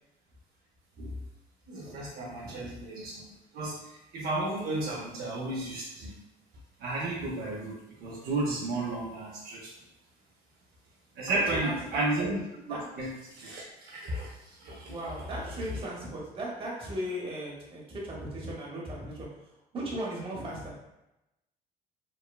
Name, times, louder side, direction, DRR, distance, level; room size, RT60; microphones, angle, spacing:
voice 1, 1.7-3.3 3.5-6.1 6.8-9.7 11.2-12.4 12.7-14.3 14.6-15.3 15.8-15.9, right 2 dB, 65° right, -4 dB, 0.6 m, -33 dB
voice 2, 11.3-12.0 12.7-12.8 14.9-19.3 19.7-20.7, right 1 dB, 30° right, -4 dB, 0.9 m, -37 dB
3.0 x 2.0 x 2.3 m, 0.91 s
cardioid pair, 110°, 17 cm